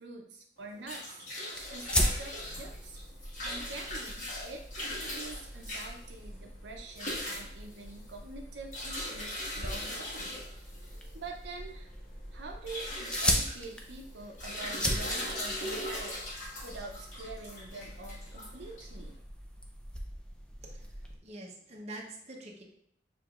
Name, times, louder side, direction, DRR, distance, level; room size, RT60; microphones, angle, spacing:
voice 1, 0.0-3.0 3.4-10.4 11.1-11.9 12.3-19.2, right 3 dB, 75° right, 2 dB, 0.6 m, -46 dB
sound 1, 0.6-19.1, left 1 dB, 45° left, 1.3 m, -40 dB
sound 2, 1.5-21.2, equal, 5° left, 0.4 m, -38 dB
voice 2, 21.2-22.6, right 1 dB, 35° right, -1 dB, 0.8 m, -45 dB
6.8 x 2.9 x 2.4 m, 0.72 s
head